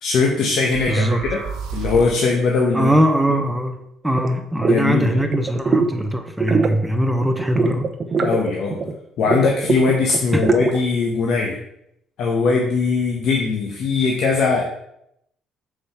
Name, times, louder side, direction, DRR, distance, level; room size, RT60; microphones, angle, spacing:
voice 1, 0.0-1.4 1.7-2.9 4.6-5.2 8.2-8.8 9.2-11.6 12.2-14.6, left 4 dB, 65° left, 0 dB, 1.1 m, -20 dB
sound 1, 0.7-2.3, right 5 dB, 80° right, 1.5 m, -31 dB
voice 2, 0.9-1.2 2.7-7.9 10.3-10.5, right 1 dB, 5° right, 5 dB, 0.7 m, -21 dB
sound 2, 4.2-4.3 4.6-4.8 5.1-5.9 6.3-6.8 7.4-8.9 9.3-10.8, right 3 dB, 35° right, 0.8 m, -21 dB
6.0 x 5.0 x 5.8 m, 0.77 s
cardioid pair, 125°, 0 cm